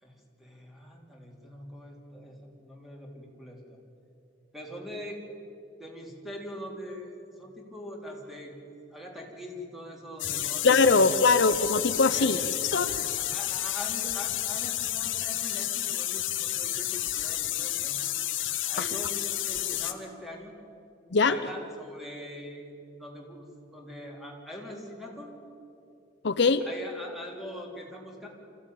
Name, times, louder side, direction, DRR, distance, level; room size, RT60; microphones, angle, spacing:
voice 1, 0.0-3.8 4.5-5.3 5.8-8.6 8.9-11.0 12.0-18.1 18.6-20.5 21.2-22.7 23.0-25.3 26.6-28.3, left 1 dB, ahead, 0 dB, 3.4 m, -43 dB
sound 1, 10.2-19.9, left 13 dB, 80° left, 1.3 m, -31 dB
voice 2, 10.6-12.4 12.7-12.9 18.8-18.9 21.1-21.4 26.2-26.7, left 4 dB, 65° left, 11 dB, 0.7 m, -22 dB
25.0 x 15.0 x 9.4 m, 2.7 s
head